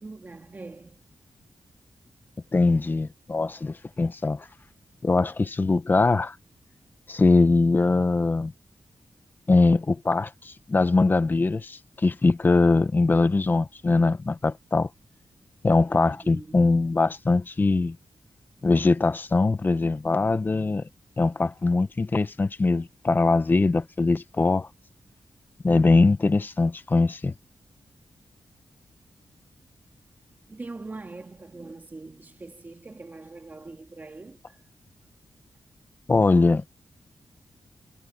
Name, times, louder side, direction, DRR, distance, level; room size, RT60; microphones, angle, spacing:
voice 1, 0.0-1.0 16.0-16.8 30.5-34.6, right 3 dB, 25° right, 2.3 m, -42 dB
voice 2, 2.5-4.5 5.0-6.4 7.1-8.5 9.5-14.9 15.6-18.0 18.6-20.9 21.2-24.7 25.6-27.3 36.1-36.6, left 3 dB, 25° left, 0.8 m, -22 dB
wide cardioid pair, 175°, 8 cm